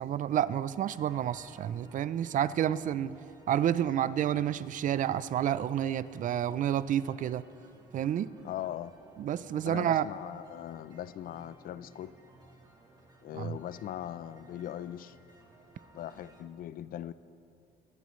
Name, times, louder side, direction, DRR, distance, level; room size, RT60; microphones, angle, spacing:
voice 1, 0.0-3.1 3.5-7.4 7.9-8.3 9.2-10.1 13.4-13.6, right 10 dB, 50° right, 16 dB, 0.5 m, -29 dB
sound 1, 0.8-16.4, right 2 dB, 25° right, 2.5 m, -58 dB
voice 2, 8.4-9.0 9.6-12.1 13.2-15.2 15.9-17.1, left 11 dB, 60° left, 16 dB, 0.5 m, -40 dB
24.5 x 12.0 x 3.2 m, 2.6 s
cardioid pair, 110°, 17 cm